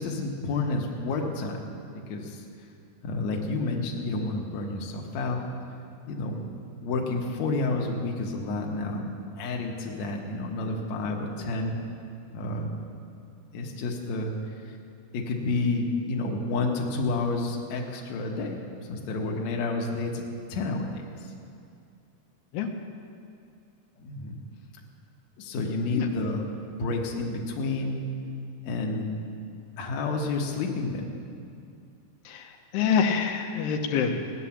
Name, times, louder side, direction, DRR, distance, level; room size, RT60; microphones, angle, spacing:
voice 1, 0.0-2.4 3.0-5.5 6.1-6.4 6.8-9.1 9.4-11.8 12.3-12.7 13.5-14.3 14.6-14.8 15.1-18.6 18.9-20.2 20.5-21.3 24.0-24.4 25.4-26.5 26.8-28.1 28.7-29.1 29.8-31.1, left 3 dB, 55° left, 0 dB, 2.3 m, -30 dB
voice 2, 32.3-34.3, left 6 dB, 85° left, 3 dB, 3.0 m, -26 dB
17.0 x 10.0 x 7.4 m, 2.4 s
omnidirectional pair, 4.7 m